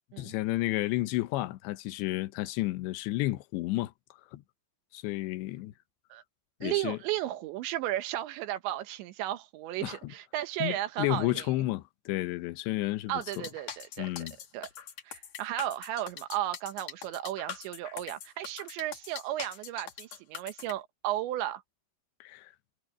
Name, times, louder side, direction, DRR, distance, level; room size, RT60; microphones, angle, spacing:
voice 1, 0.2-4.4 4.9-5.7 6.6-7.0 9.8-10.1 10.6-13.2 14.0-14.4 22.2-22.5, left 18 dB, 85° left, 3.0 m, -32 dB
voice 2, 6.6-11.5 13.1-14.1 14.5-14.7 15.1-21.6, right 14 dB, 85° right, 3.5 m, -34 dB
sound 1, 13.2-20.7, left 8 dB, 50° left, 2.6 m, -43 dB
omnidirectional pair, 5.1 m